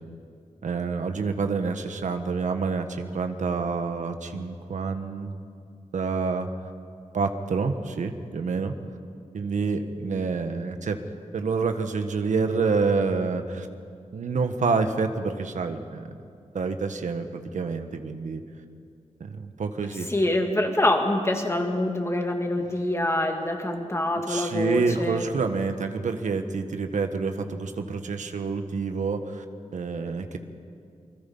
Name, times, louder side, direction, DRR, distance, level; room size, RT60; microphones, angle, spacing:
voice 1, 0.6-5.3 5.9-6.5 7.1-8.7 9.3-11.0 11.3-13.7 14.1-16.1 16.5-18.4 19.2-20.1 24.3-29.4 29.7-30.4, right 4 dB, 80° right, 7 dB, 1.5 m, -27 dB
voice 2, 20.1-25.3, left 1 dB, 20° left, 3 dB, 2.4 m, -25 dB
28.5 x 21.0 x 5.5 m, 2.3 s
wide cardioid pair, 105°, 12 cm